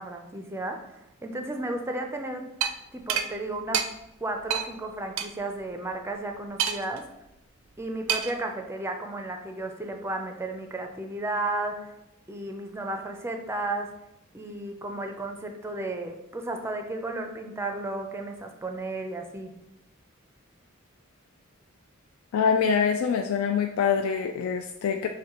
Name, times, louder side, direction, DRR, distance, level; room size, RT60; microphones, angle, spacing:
voice 1, 0.0-2.4 2.9-3.8 4.2-7.0 7.8-11.9 12.3-13.9 14.3-19.5, right 2 dB, 10° right, 4 dB, 0.4 m, -33 dB
sound 1, 2.6-2.7 3.1-3.3 3.7-3.9 4.5-4.7 5.2-5.3 6.6-7.0 8.1-8.4, right 8 dB, 75° right, 0.4 m, -26 dB
voice 2, 22.3-25.1, left 6 dB, 80° left, 4 dB, 0.3 m, -25 dB
6.3 x 2.2 x 2.9 m, 0.89 s
head